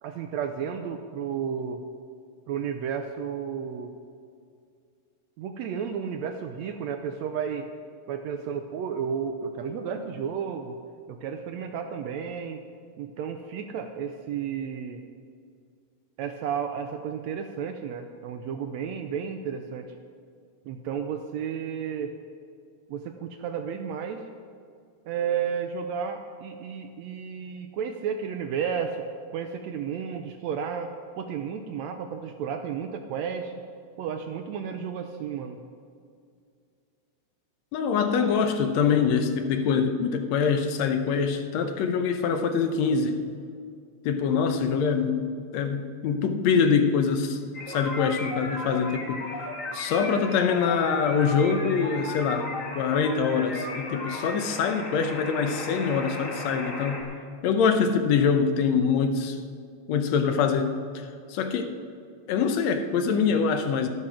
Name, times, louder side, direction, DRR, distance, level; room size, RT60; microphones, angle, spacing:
voice 1, 0.0-1.8 2.5-3.9 5.4-7.7 8.1-10.8 11.1-12.6 13.0-15.0 16.2-19.9 20.6-22.2 22.9-24.3 25.1-29.1 29.3-30.9 31.2-33.5 34.0-35.6, right 7 dB, 80° right, 6 dB, 1.7 m, -32 dB
voice 2, 37.7-43.2 44.0-47.4 47.7-49.2 49.7-52.5 52.7-57.0 57.4-59.4 59.9-61.7 62.3-63.9, left 6 dB, 70° left, 7 dB, 1.8 m, -24 dB
sound 1, 47.5-57.0, left 2 dB, 35° left, 1.4 m, -35 dB
12.5 x 12.0 x 4.9 m, 2.3 s
omnidirectional pair, 3.6 m